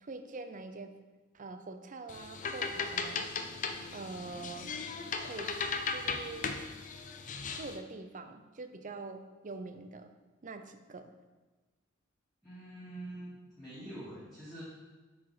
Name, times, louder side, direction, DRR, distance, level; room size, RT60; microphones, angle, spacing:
voice 1, 0.0-1.0 1.3-3.3 3.9-4.7 5.2-6.5 7.5-10.1 10.4-11.1, right 3 dB, 40° right, 8 dB, 0.5 m, -44 dB
sound 1, 2.1-7.8, left 5 dB, 40° left, 0.5 m, -37 dB
voice 2, 12.4-14.6, right 1 dB, ahead, -12 dB, 2.3 m, -45 dB
7.6 x 4.7 x 4.9 m, 1.2 s
head